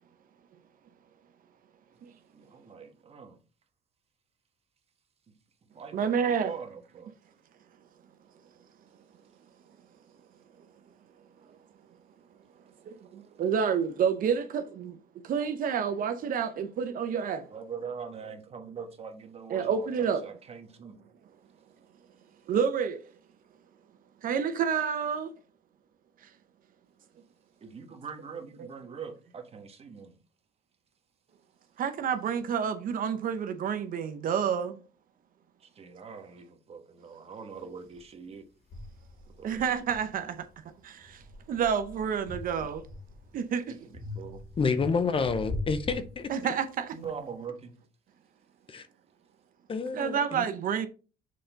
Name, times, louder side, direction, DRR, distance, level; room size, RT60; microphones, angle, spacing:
voice 1, 2.3-3.4 5.7-7.1 17.5-21.0 27.6-30.2 35.6-38.5 39.4-39.6 43.7-44.4 46.9-47.8, right 6 dB, 35° right, 1.3 m, -42 dB
voice 2, 5.9-6.5 12.8-15.0 15.2-17.5 19.5-20.2 22.5-23.1 24.2-25.3 26.2-26.3 31.8-34.8 39.4-40.5 40.8-42.9 43.3-43.8 46.3-47.0 49.9-50.9, right 7 dB, 55° right, 0.8 m, -29 dB
sound 1, 37.9-38.0 38.7-40.6 41.0-43.4 43.9-46.7, left 2 dB, 60° left, 2.2 m, -41 dB
voice 3, 44.6-46.3 48.7-48.9 49.7-50.4, left 5 dB, 30° left, 0.7 m, -29 dB
6.6 x 3.9 x 3.9 m
cardioid pair, 110°, 17 cm